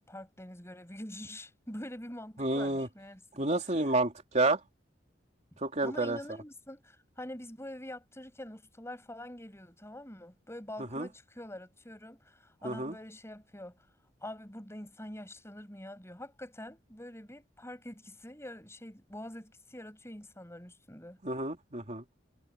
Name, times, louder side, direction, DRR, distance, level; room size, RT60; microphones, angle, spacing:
voice 1, 0.0-3.9 5.8-13.8 14.2-21.2, left 1 dB, 15° left, 7.6 m, -45 dB
voice 2, 2.4-2.9 3.4-4.6 5.6-6.2 10.9-11.1 12.6-12.9 21.2-22.0, right 2 dB, 40° right, 3.3 m, -29 dB
head